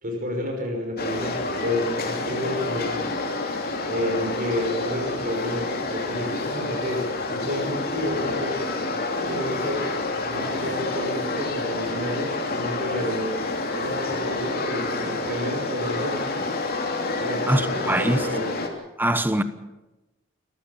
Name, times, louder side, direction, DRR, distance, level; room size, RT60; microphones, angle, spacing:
voice 1, 0.0-3.1 3.8-8.6 9.3-9.8 10.3-13.4 13.7-16.5 17.2-18.4, left 1 dB, 45° right, 5.9 m, -30 dB
sound 1, 1.0-18.7, left 2 dB, 50° left, 3.2 m, -28 dB
voice 2, 17.5-18.2 19.0-19.4, right 1 dB, 10° right, 1.2 m, -22 dB
28.5 x 15.0 x 7.2 m
head